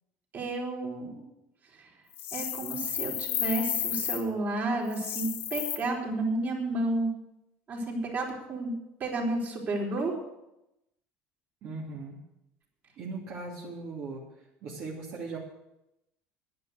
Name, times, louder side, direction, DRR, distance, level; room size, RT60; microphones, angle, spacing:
voice 1, 0.3-1.2 2.3-7.1 7.7-8.7 9.0-10.1, right 2 dB, 40° right, -1 dB, 4.3 m, -31 dB
sound 1, 2.1-4.2 4.9-5.8, left 11 dB, 60° left, 2.0 m, -32 dB
voice 2, 11.6-12.2 13.0-14.2 14.6-15.4, right 3 dB, 55° right, -4 dB, 2.7 m, -38 dB
10.5 x 10.0 x 7.8 m, 0.90 s
cardioid pair, 120°, 5 cm